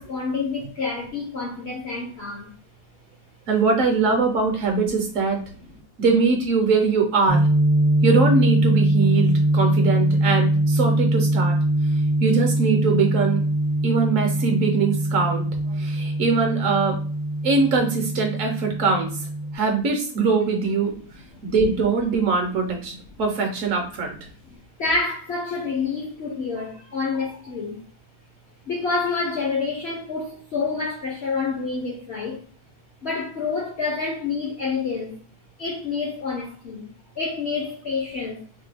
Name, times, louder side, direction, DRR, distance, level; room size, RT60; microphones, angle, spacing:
voice 1, 0.0-2.5 5.6-5.7 22.9-23.0 24.5-27.8 28.7-32.4 33.0-35.2 35.6-36.9 37.2-38.4, left 4 dB, 60° left, 0.7 m, -28 dB
voice 2, 3.5-5.4 6.0-7.5 8.0-11.6 12.2-13.4 13.8-17.0 17.4-19.1 19.5-20.9 21.4-24.1, right 4 dB, 65° right, 0.9 m, -22 dB
sound 1, 7.3-19.5, right 1 dB, 10° right, 0.4 m, -22 dB
2.9 x 2.2 x 3.3 m
omnidirectional pair, 1.7 m